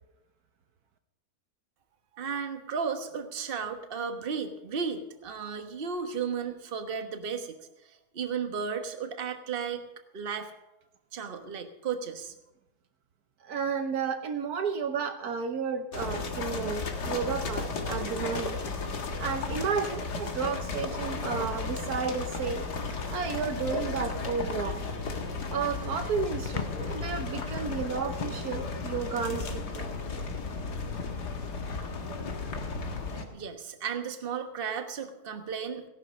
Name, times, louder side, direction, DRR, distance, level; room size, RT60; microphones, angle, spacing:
voice 1, 2.1-9.8 10.1-10.5 11.1-12.3 33.3-35.9, right 6 dB, 35° right, 6 dB, 1.3 m, -34 dB
voice 2, 13.4-18.6 19.2-22.6 23.1-24.8 25.5-29.9, right 6 dB, 70° right, 7 dB, 1.4 m, -32 dB
sound 1, 15.9-33.3, left 4 dB, 80° left, 2.2 m, -34 dB
sound 2, 26.4-33.1, left 5 dB, 45° left, 0.6 m, -43 dB
16.5 x 11.5 x 5.4 m, 0.95 s
omnidirectional pair, 1.7 m